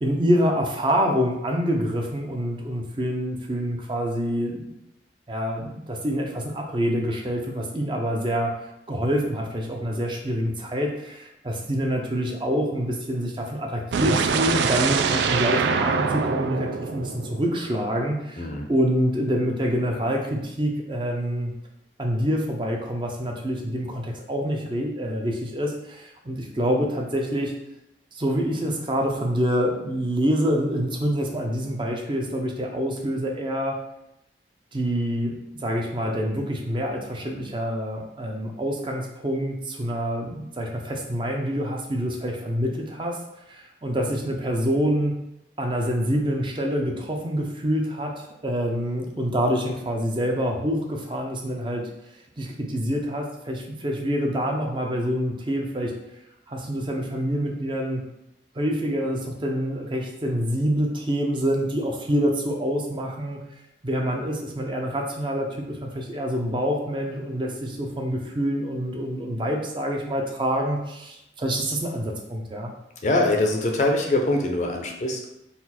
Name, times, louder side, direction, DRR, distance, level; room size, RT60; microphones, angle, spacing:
voice 1, 0.0-4.7 5.3-8.5 8.9-21.5 22.0-27.5 28.1-33.8 34.7-43.2 43.5-45.1 45.6-51.9 52.4-55.9 56.5-58.0 58.5-63.4 63.8-72.7, equal, 25° right, 1 dB, 0.5 m, -26 dB
sound 1, 13.9-17.9, right 5 dB, 80° right, 0.3 m, -24 dB
voice 2, 18.4-18.7 73.0-75.3, left 2 dB, 40° left, 2 dB, 0.5 m, -23 dB
4.0 x 2.4 x 4.2 m, 0.84 s
head